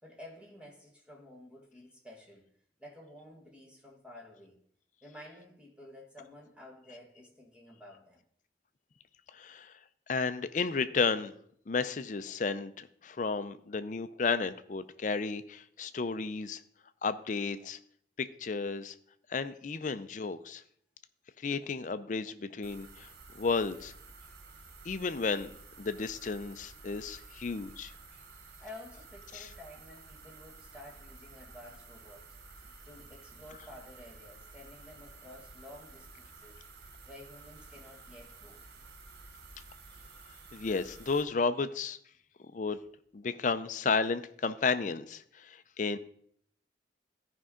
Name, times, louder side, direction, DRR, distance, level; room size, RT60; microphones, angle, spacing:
voice 1, 0.0-2.5 2.8-4.6 5.0-8.2 28.6-36.6 37.1-38.6, left 1 dB, 5° right, 1.4 m, -52 dB
voice 2, 9.3-9.7 10.1-11.3 11.7-16.6 17.0-17.8 18.2-18.9 19.3-20.6 21.4-23.1 23.4-23.9 24.8-25.5 25.8-27.9 29.3-29.5 40.5-42.0 42.5-42.8 43.1-46.0, left 4 dB, 45° left, 0.5 m, -33 dB
sound 1, 22.6-41.2, right 4 dB, 65° right, 0.8 m, -52 dB
14.0 x 5.3 x 3.7 m
head